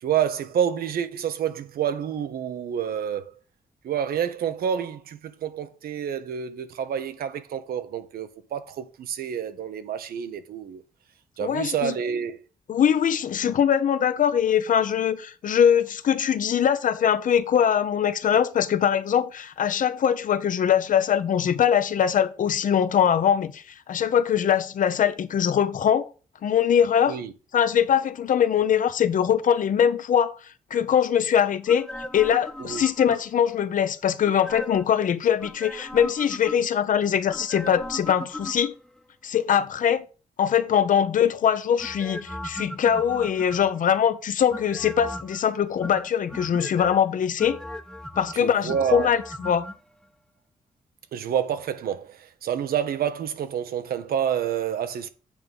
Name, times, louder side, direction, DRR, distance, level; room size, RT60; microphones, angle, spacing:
voice 1, 0.0-3.3 3.8-10.8 11.4-12.4 27.0-27.3 32.6-32.9 48.3-49.1 51.1-55.1, right 8 dB, 85° right, 1.0 m, -28 dB
voice 2, 11.4-11.9 12.7-26.1 26.4-27.2 27.5-30.3 30.7-31.9 32.1-38.7 39.2-40.0 40.4-47.6 48.2-49.6, left 8 dB, 60° left, 0.8 m, -22 dB
sound 1, 31.7-33.5 34.2-35.0 35.4-36.8 37.3-39.0 41.8-43.9 44.5-45.4 45.8-47.0 47.4-49.8 50.0-50.1, left 1 dB, 5° left, 0.8 m, -38 dB
8.7 x 3.8 x 6.9 m
cardioid pair, 115°, 15 cm